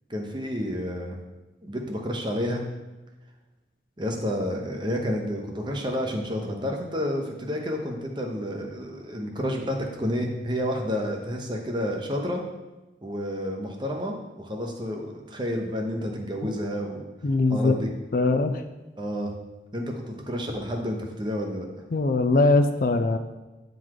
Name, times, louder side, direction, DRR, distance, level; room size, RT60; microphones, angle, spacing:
voice 1, 0.1-1.2 1.6-2.6 4.0-12.4 13.0-17.0 17.5-17.9 19.0-19.3 19.7-21.7, equal, 25° right, 2 dB, 0.9 m, -30 dB
voice 2, 17.2-17.8 18.1-18.6 21.9-23.2, left 3 dB, 50° left, 8 dB, 0.4 m, -21 dB
9.0 x 4.0 x 4.8 m, 1.1 s
head